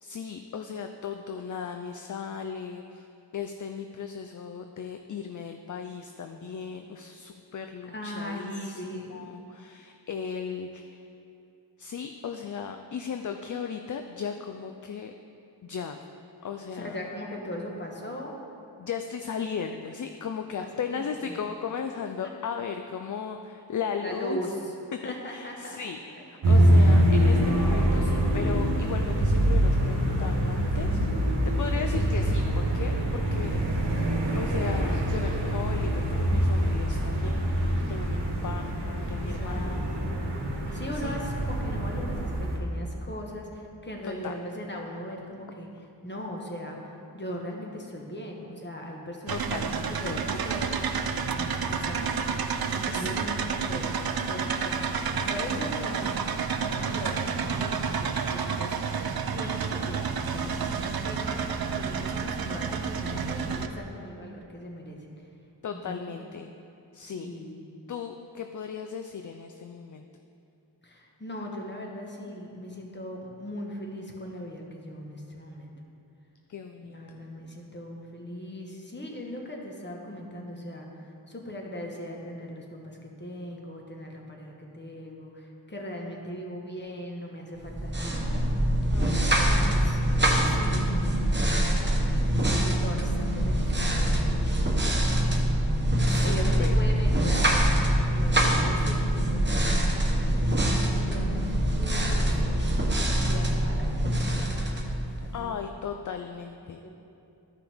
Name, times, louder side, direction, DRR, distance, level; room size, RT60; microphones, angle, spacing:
voice 1, 0.0-3.1 3.3-11.0 11.8-15.1 15.6-16.0 16.4-17.0 18.8-24.4 25.0-33.7 34.4-39.8 40.7-41.2 44.0-44.3 49.3-49.7 50.0-50.2 52.9-53.2 65.6-66.5 66.9-67.3 67.9-70.1 76.5-77.0 88.9-89.9 96.1-96.7 105.3-106.8, left 7 dB, 45° left, 6 dB, 0.4 m, -36 dB
voice 2, 7.9-9.3 16.7-18.4 20.6-21.4 24.0-24.8 25.0-25.8 26.2-26.3 39.0-40.1 40.7-45.7 46.0-51.1 51.3-53.9 54.3-56.2 56.6-58.8 59.3-65.0 65.7-66.3 67.0-67.6 70.8-75.7 76.8-88.6 89.4-90.0 90.4-92.0 92.5-95.2 96.2-97.5 98.0-104.6 105.0-105.6 106.6-106.9, equal, 25° left, 0 dB, 1.3 m, -39 dB
sound 1, 26.4-42.6, right 1 dB, 85° right, 1.3 m, -25 dB
sound 2, 49.3-63.7, right 6 dB, 60° right, 0.6 m, -30 dB
sound 3, 87.6-105.5, right 1 dB, 25° right, 1.1 m, -24 dB
13.0 x 5.7 x 3.5 m, 2.7 s
wide cardioid pair, 75°, 42 cm